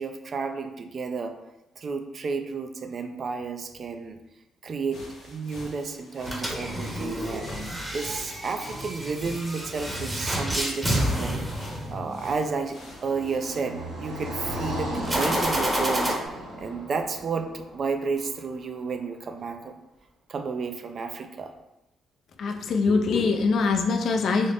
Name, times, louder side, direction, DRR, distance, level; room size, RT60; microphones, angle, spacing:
voice 1, 0.0-1.3 1.8-4.2 4.6-19.8 20.3-21.5, right 4 dB, 50° right, 6 dB, 0.4 m, -32 dB
sound 1, 4.9-13.6, left 1 dB, 85° left, 0.9 m, -46 dB
sound 2, 6.2-12.4 15.0-16.1, equal, 15° right, 0.8 m, -29 dB
Car passing by, 11.6-18.7, equal, 80° right, 1.1 m, -36 dB
voice 2, 22.4-24.5, left 4 dB, 65° left, 5 dB, 0.4 m, -23 dB
3.8 x 2.0 x 3.3 m, 0.91 s
cardioid pair, 90°, 0 cm